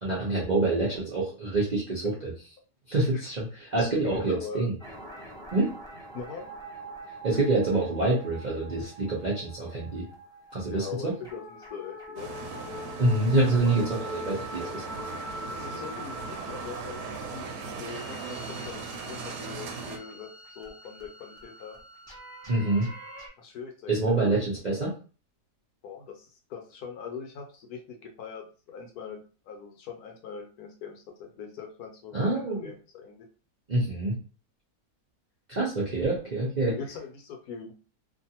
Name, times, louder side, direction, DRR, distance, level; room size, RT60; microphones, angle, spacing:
voice 1, 0.0-2.3 2.9-4.7 5.5-5.7 7.2-10.0 10.5-11.1 13.0-14.8 22.5-22.9 23.9-24.9 32.1-32.7 33.7-34.2 35.5-36.7, right 2 dB, 45° right, -5 dB, 0.5 m, -26 dB
voice 2, 3.8-4.7 6.1-6.5 10.7-12.3 15.5-17.0 17.3-21.8 23.4-24.2 25.8-33.3 36.7-37.7, left 6 dB, 70° left, 3 dB, 1.1 m, -41 dB
sound 1, 4.8-23.3, equal, 5° left, 0.4 m, -44 dB
sound 2, 12.2-20.0, right 5 dB, 85° right, 1.2 m, -39 dB
2.6 x 2.5 x 2.8 m, 0.35 s
omnidirectional pair, 1.8 m